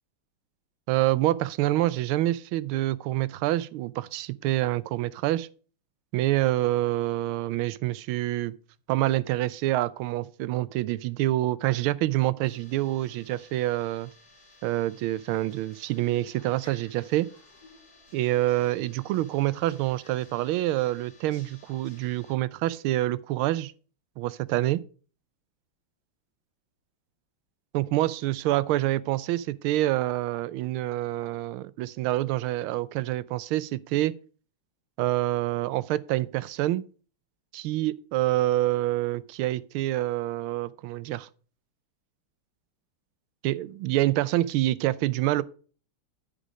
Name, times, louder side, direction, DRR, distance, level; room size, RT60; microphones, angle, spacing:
voice 1, 0.9-5.5 6.1-8.5 8.9-14.1 14.6-17.3 18.1-23.7 24.2-24.8 27.7-34.1 35.0-36.9 37.5-41.3 43.4-45.4, right 15 dB, 85° right, 1.4 m, -27 dB
sound 1, 12.4-22.3, left 2 dB, 50° left, 5.6 m, -56 dB
10.0 x 5.2 x 4.9 m
omnidirectional pair, 2.3 m